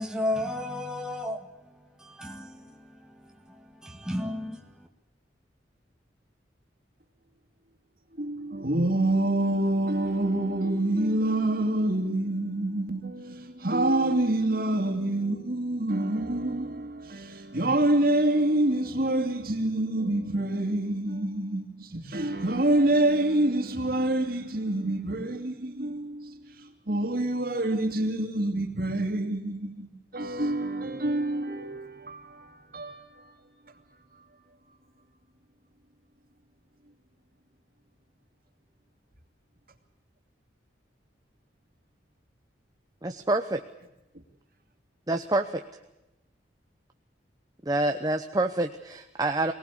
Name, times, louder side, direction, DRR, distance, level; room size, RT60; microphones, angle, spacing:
voice 1, 0.0-4.9, left 1 dB, 5° right, 1.7 m, -34 dB
voice 2, 8.2-33.3 34.1-34.3, right 1 dB, 50° right, 2.8 m, -27 dB
voice 3, 43.0-43.6 45.1-45.6 47.6-49.5, right 2 dB, 20° right, 0.9 m, -27 dB
23.5 x 18.5 x 8.5 m
head